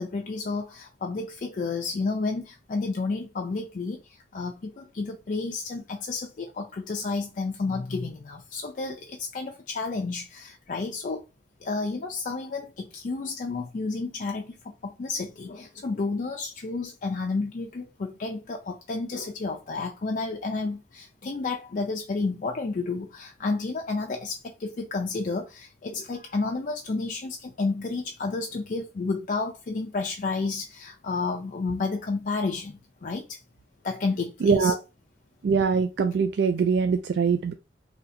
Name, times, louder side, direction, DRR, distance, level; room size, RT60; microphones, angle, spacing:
voice 1, 0.0-11.2 11.6-33.4 33.8-34.7, left 3 dB, 45° left, 0.4 m, -31 dB
voice 2, 34.4-34.8 35.4-37.5, right 5 dB, 70° right, 0.3 m, -22 dB
2.8 x 2.6 x 4.1 m
head